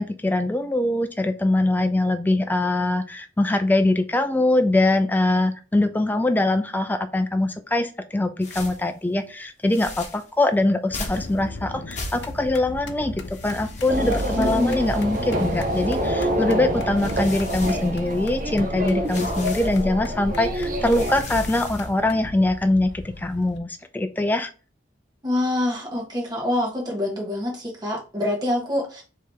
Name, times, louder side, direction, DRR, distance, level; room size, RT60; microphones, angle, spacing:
voice 1, 0.0-24.5, left 2 dB, 10° left, 7 dB, 0.3 m, -23 dB
sound 1, 8.4-8.9 9.7-10.3 10.9-11.4 11.9-12.5 13.2-16.2 16.8-18.4 19.1-19.8 20.4-22.0, left 2 dB, 40° left, 1.0 m, -38 dB
sound 2, 10.9-23.6, left 2 dB, 65° left, 0.6 m, -38 dB
sound 3, 13.9-21.2, equal, 45° right, 0.7 m, -26 dB
voice 2, 14.4-14.8 25.2-29.0, left 1 dB, 20° right, -1 dB, 1.1 m, -25 dB
4.7 x 2.9 x 3.4 m, 0.35 s
head